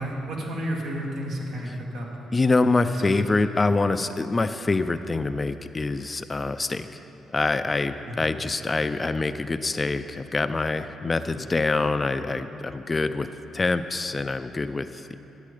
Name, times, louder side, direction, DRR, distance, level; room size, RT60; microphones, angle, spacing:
voice 1, 0.0-2.3 2.8-3.2 8.0-8.1, equal, 80° right, -3 dB, 1.9 m, -32 dB
voice 2, 2.3-6.9 7.3-13.3 13.5-15.1, left 3 dB, 25° left, 10 dB, 0.4 m, -25 dB
11.5 x 8.3 x 5.0 m, 3.0 s
cardioid pair, 90°, 0 cm